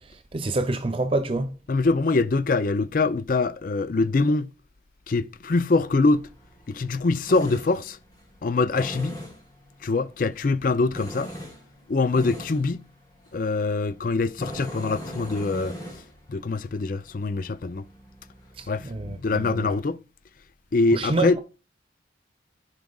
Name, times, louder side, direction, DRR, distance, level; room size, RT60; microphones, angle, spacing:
voice 1, 0.1-1.6 18.6-19.7 20.9-21.4, right 2 dB, 30° right, 0.5 m, -27 dB
voice 2, 1.7-4.5 5.1-6.2 6.7-8.0 8.4-9.2 9.8-11.3 11.9-12.8 13.3-15.8 16.3-17.8 18.7-20.0 20.7-21.4, left 3 dB, 45° left, 0.4 m, -24 dB
Tools, 5.7-19.8, equal, 20° left, 2.1 m, -42 dB
13.0 x 5.0 x 2.3 m
head